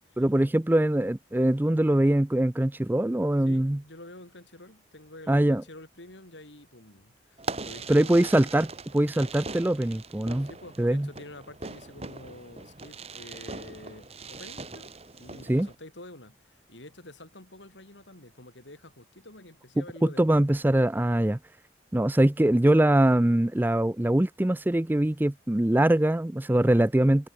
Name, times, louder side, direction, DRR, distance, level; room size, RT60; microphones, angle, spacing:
voice 1, 0.2-3.8 5.3-5.6 7.9-8.7 8.9-10.5 10.8-11.1 15.5-15.7 19.8-21.4 21.9-27.3, right 1 dB, 10° right, 0.4 m, -23 dB
voice 2, 3.5-8.3 10.4-20.4, left 1 dB, 80° left, 6.2 m, -48 dB
Fireworks, 7.4-15.7, right 3 dB, 35° right, 2.3 m, -41 dB
head